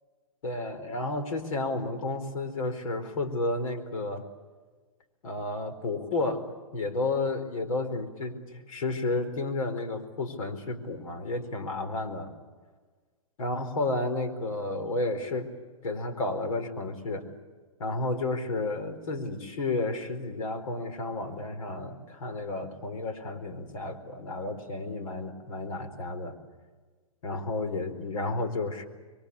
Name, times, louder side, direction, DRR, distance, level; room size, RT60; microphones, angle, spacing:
voice 1, 0.4-4.3 5.2-12.3 13.4-15.5 15.8-17.2 17.8-26.4 27.2-28.9, left 2 dB, 75° left, 9 dB, 4.5 m, -32 dB
27.0 x 23.0 x 8.6 m, 1.4 s
hypercardioid pair, 145°, 18 cm